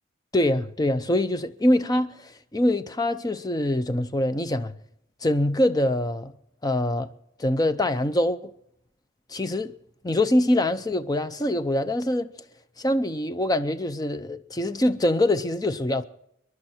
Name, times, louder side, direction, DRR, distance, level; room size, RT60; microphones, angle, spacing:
voice 1, 0.3-4.8 5.2-6.3 6.6-7.1 7.4-8.5 9.3-9.7 10.0-12.3 12.8-16.0, left 1 dB, 20° left, 0.6 m, -24 dB
25.5 x 11.0 x 4.4 m
head